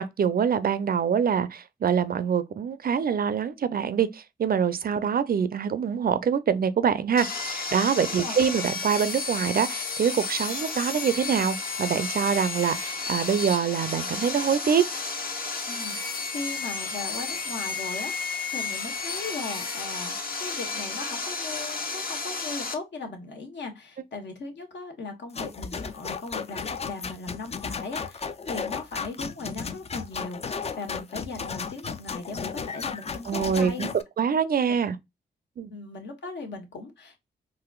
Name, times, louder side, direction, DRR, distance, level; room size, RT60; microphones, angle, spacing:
voice 1, 0.0-14.8 33.3-33.9 34.2-35.0 35.6-35.7, right 7 dB, 50° right, 0.5 m, -25 dB
Sawing, 7.2-22.7, left 4 dB, 50° left, 0.9 m, -32 dB
voice 2, 8.0-8.4 15.7-16.0 16.3-33.9 35.7-37.2, left 3 dB, 65° left, 1.1 m, -38 dB
underworld march, 25.3-34.0, left 5 dB, 35° left, 0.4 m, -34 dB
4.0 x 2.5 x 2.3 m
supercardioid pair, 45°, 19 cm